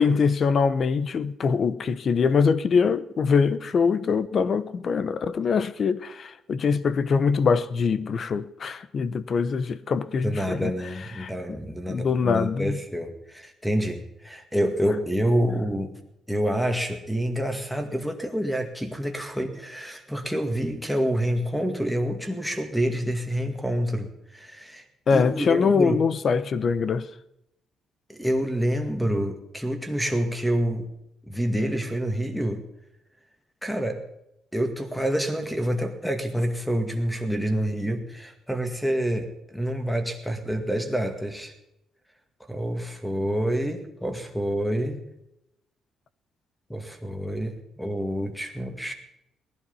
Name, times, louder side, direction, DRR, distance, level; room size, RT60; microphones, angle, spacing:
voice 1, 0.0-10.7 11.2-11.3 11.9-12.8 25.1-27.1, left 5 dB, 45° left, 0.8 m, -23 dB
voice 2, 10.2-15.9 16.3-24.8 25.1-26.0 28.1-30.9 31.3-32.6 33.6-34.0 34.5-41.5 42.5-45.0 46.7-48.9, equal, ahead, 2.1 m, -27 dB
19.0 x 11.5 x 5.6 m
cardioid pair, 130°, 0 cm